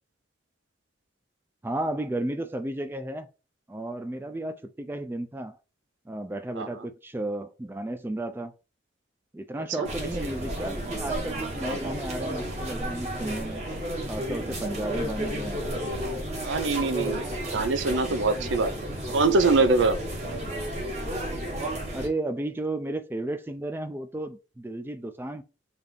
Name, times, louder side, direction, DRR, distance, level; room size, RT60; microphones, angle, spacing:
voice 1, 1.6-3.3 3.7-5.5 6.1-8.5 9.3-13.7 14.1-15.6 21.9-25.4, right 1 dB, 10° right, 0.3 m, -33 dB
voice 2, 9.6-9.9 16.4-17.2 17.5-20.0, right 3 dB, 85° right, 0.6 m, -24 dB
sound 1, 9.8-22.1, right 1 dB, 35° right, 1.2 m, -32 dB
3.4 x 2.8 x 3.8 m
head